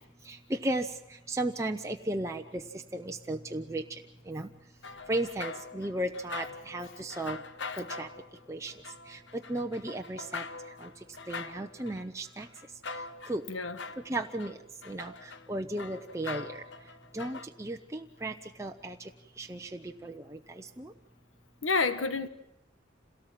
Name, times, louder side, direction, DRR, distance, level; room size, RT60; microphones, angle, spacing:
voice 1, 0.5-0.9 1.3-2.6 2.9-3.8 4.3-4.5 5.1-7.4 7.8-8.1 8.5-8.7 9.1-9.2 9.5-10.4 11.3-12.5 13.3-13.4 14.1-14.5 14.9-15.1 15.5-16.5 17.1-18.3 18.6-19.0 19.4-20.2 20.8-20.9, right 1 dB, 15° right, 3 dB, 0.8 m, -34 dB
sound 1, 4.8-13.5 13.8-17.5, left 4 dB, 65° left, 1.0 m, -43 dB
voice 2, 13.5-13.8 21.6-22.3, left 4 dB, 90° left, 11 dB, 1.4 m, -29 dB
27.5 x 18.0 x 7.5 m, 0.84 s
head